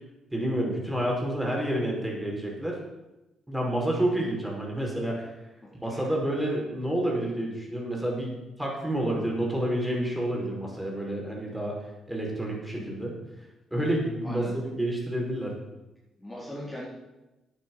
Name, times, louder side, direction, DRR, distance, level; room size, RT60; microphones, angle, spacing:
voice 1, 0.3-2.8 3.5-5.3 5.8-11.8 12.1-13.1 13.7-15.5, right 1 dB, 5° right, -2 dB, 5.4 m, -29 dB
voice 2, 5.6-6.1 14.2-14.6 16.2-16.9, left 1 dB, 15° left, -6 dB, 3.6 m, -40 dB
10.0 x 9.1 x 7.5 m, 1.0 s
supercardioid pair, 70°, 0 cm